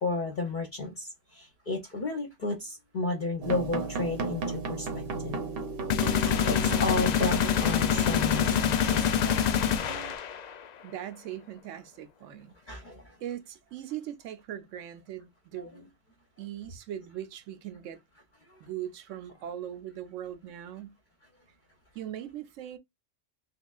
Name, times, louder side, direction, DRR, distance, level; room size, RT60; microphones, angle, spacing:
voice 1, 0.0-5.4 6.4-9.7 12.7-13.2 15.6-15.7, left 3 dB, 50° left, 0.7 m, -33 dB
sound 1, 3.4-10.1, right 3 dB, 55° right, 0.9 m, -35 dB
sound 2, 5.9-10.6, left 8 dB, 90° left, 0.3 m, -26 dB
voice 2, 10.8-12.6 13.2-15.9 16.4-18.0 18.6-21.0 21.9-22.8, right 11 dB, 85° right, 1.0 m, -40 dB
3.5 x 3.2 x 2.3 m
omnidirectional pair, 1.3 m